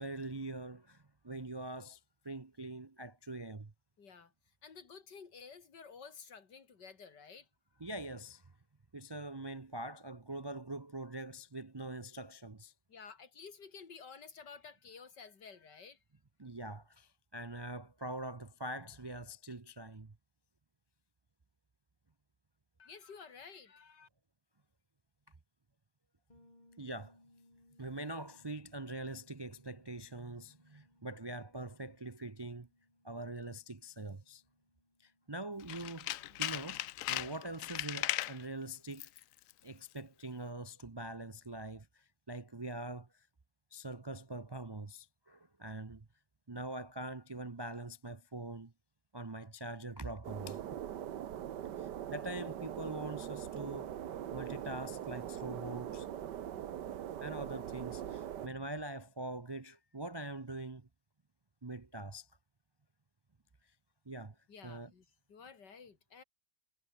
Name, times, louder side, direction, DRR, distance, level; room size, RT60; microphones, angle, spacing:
voice 1, 0.0-2.0 2.2-3.7 7.8-8.4 8.9-12.7 16.4-20.1 26.8-27.2 27.8-32.7 33.0-34.4 35.0-36.8 37.1-39.1 39.6-43.3 43.7-46.0 46.5-48.7 49.1-50.8 51.8-53.9 54.3-56.1 57.2-60.9 61.6-62.3 64.1-64.3 64.6-64.9, right 2 dB, 40° right, 0.3 m, -43 dB
voice 2, 4.0-4.3 4.6-7.5 12.9-16.0 22.8-24.1 64.5-66.2, left 5 dB, 90° left, 3.0 m, -52 dB
Bass guitar, 26.3-36.0, left 1 dB, 25° left, 4.5 m, -68 dB
Tools, 35.6-38.4 38.9-39.2 39.5-39.6, left 14 dB, 70° left, 0.8 m, -37 dB
sound 1, 50.2-58.5, right 10 dB, 85° right, 1.7 m, -42 dB
omnidirectional pair, 1.8 m